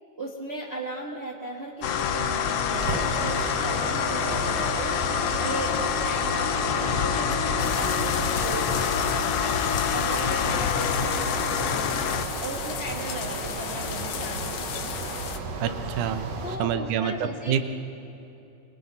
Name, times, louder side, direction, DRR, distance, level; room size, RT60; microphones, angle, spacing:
voice 1, 0.2-4.9 5.4-9.3 9.9-12.0 12.4-14.7 16.4-17.7, right 1 dB, 40° right, -1 dB, 0.8 m, -36 dB
sound 1, 1.8-12.2, left 8 dB, 70° left, 1.5 m, -26 dB
sound 2, 2.7-16.6, right 4 dB, 60° right, 2.4 m, -34 dB
sound 3, 7.6-15.4, left 8 dB, 90° left, 1.1 m, -35 dB
voice 2, 15.6-16.3 16.6-17.7, right 8 dB, 80° right, 9 dB, 2.4 m, -27 dB
29.0 x 25.5 x 4.1 m, 2.9 s
omnidirectional pair, 3.6 m